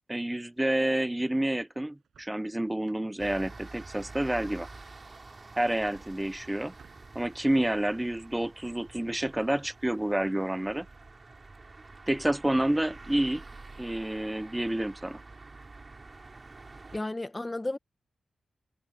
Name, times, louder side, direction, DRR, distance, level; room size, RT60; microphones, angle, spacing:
voice 1, 0.1-4.7 5.6-6.7 7.1-10.9 12.1-13.4 13.8-15.2, right 1 dB, 10° right, 0.6 m, -29 dB
sound 1, 1.9-7.5, right 8 dB, 85° right, 7.5 m, -66 dB
sound 2, 3.2-17.0, right 3 dB, 35° right, 3.7 m, -48 dB
voice 2, 16.9-17.8, left 2 dB, 20° left, 1.2 m, -33 dB
cardioid pair, 90°, 0 cm